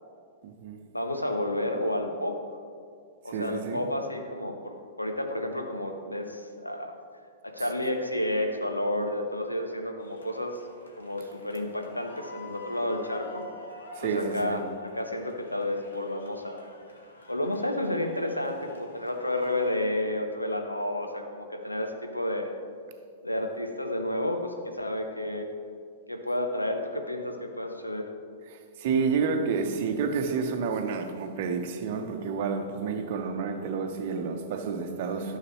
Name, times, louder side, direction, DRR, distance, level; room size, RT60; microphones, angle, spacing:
voice 1, 0.4-0.8 3.3-3.9 14.0-14.6 28.5-35.4, right 5 dB, 50° right, 6 dB, 0.8 m, -30 dB
voice 2, 0.9-2.4 3.2-6.9 7.4-10.6 11.0-13.5 14.0-16.7 17.3-22.5 23.2-25.5 26.1-28.1, left 1 dB, 85° left, 4 dB, 0.8 m, -31 dB
sound 1, 10.0-19.8, left 2 dB, 70° left, 1.3 m, -48 dB
12.5 x 6.7 x 3.1 m, 2.3 s
figure-of-eight pair, 100°, 0 cm